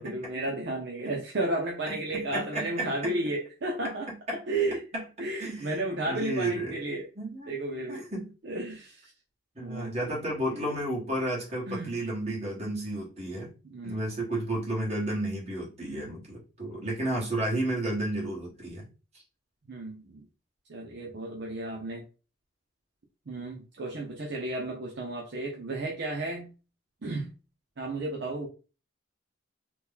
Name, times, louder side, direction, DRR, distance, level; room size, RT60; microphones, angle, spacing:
voice 1, 0.0-7.1 7.5-8.1 8.4-9.1 9.6-10.1 10.5-10.6 11.7-11.9 13.6-14.1 19.7-20.3 20.7-22.1 23.3-26.5 27.0-27.3 27.8-28.5, right 2 dB, 60° right, 0 dB, 0.6 m, -33 dB
voice 2, 1.9-3.2 3.8-3.9 4.3-4.4 4.9-5.0 5.4-6.7 7.1-7.5 7.9-8.3 9.5-13.5 13.8-18.9 19.1-19.2, right 1 dB, 35° right, -4 dB, 1.4 m, -32 dB
3.0 x 2.2 x 3.5 m, 0.33 s
head